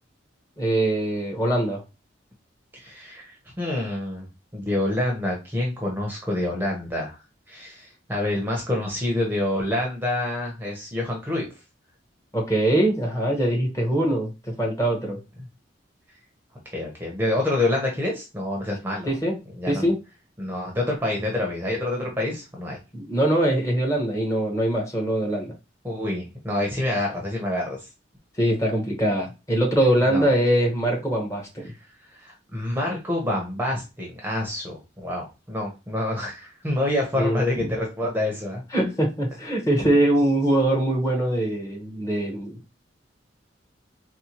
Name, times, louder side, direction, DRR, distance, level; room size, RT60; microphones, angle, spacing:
voice 1, 0.6-1.8 12.3-14.3 14.6-15.2 19.1-19.4 19.7-20.0 22.9-25.5 28.4-31.7 37.2-37.7 38.7-42.6, right 1 dB, 15° left, 0 dB, 1.0 m, -22 dB
voice 2, 2.7-4.3 4.5-7.2 7.5-11.5 16.7-19.1 19.6-19.9 20.4-22.8 25.8-27.8 30.0-30.2 32.1-38.6, left 1 dB, 10° right, -1 dB, 0.8 m, -27 dB
4.2 x 2.2 x 2.9 m, 0.27 s
head